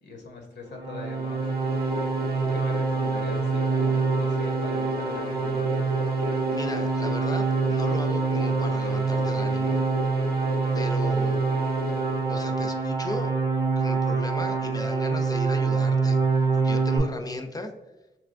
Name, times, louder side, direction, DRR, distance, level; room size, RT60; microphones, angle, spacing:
voice 1, 0.0-1.4 2.5-5.9, left 3 dB, 80° left, 2 dB, 0.8 m, -40 dB
sound 1, 0.7-17.0, right 4 dB, 20° right, 0.7 m, -25 dB
sound 2, 1.1-12.9, left 2 dB, 60° right, 0.6 m, -36 dB
voice 2, 6.5-9.8 10.7-11.4 12.3-13.3 13.8-17.7, left 1 dB, 20° left, 5 dB, 0.4 m, -36 dB
3.3 x 2.8 x 2.5 m, 1.0 s
cardioid pair, 65°, 18 cm